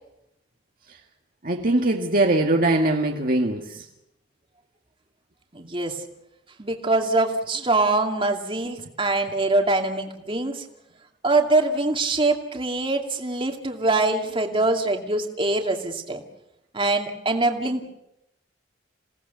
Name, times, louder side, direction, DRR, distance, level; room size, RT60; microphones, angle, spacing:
voice 1, 1.4-3.8, right 2 dB, 50° right, 2 dB, 1.7 m, -21 dB
voice 2, 5.5-6.0 6.6-10.6 11.2-16.2 16.7-17.9, right 2 dB, 30° right, 3 dB, 2.5 m, -23 dB
28.5 x 18.0 x 6.9 m, 0.85 s
head